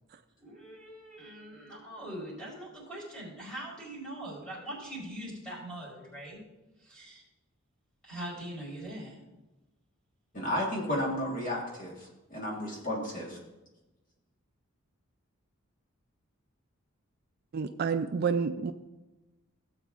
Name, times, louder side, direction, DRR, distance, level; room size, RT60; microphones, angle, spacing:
voice 1, 0.4-6.4 6.8-7.2 8.0-9.2, right 1 dB, 5° left, -6 dB, 3.9 m, -42 dB
voice 2, 10.3-13.4, left 1 dB, 40° left, -2 dB, 1.5 m, -33 dB
voice 3, 17.5-18.7, right 6 dB, 45° right, 8 dB, 0.3 m, -29 dB
16.5 x 8.0 x 2.5 m, 1.1 s
head